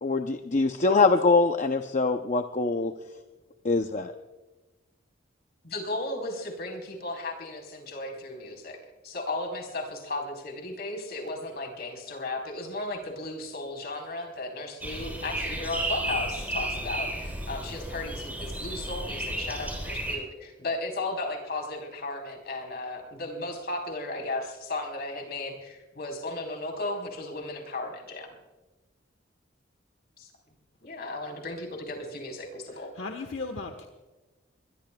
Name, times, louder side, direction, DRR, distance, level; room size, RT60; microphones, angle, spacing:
voice 1, 0.0-2.9 3.6-4.1, left 3 dB, 40° left, 6 dB, 0.6 m, -23 dB
voice 2, 5.6-8.8 9.0-28.3 30.2-30.3 30.8-32.9, left 2 dB, 55° left, 1 dB, 4.2 m, -35 dB
sound 1, 14.8-20.2, right 1 dB, 10° right, 3.8 m, -33 dB
voice 3, 32.7-33.9, left 3 dB, 70° left, 4 dB, 1.3 m, -36 dB
23.5 x 21.0 x 2.3 m, 1.1 s
head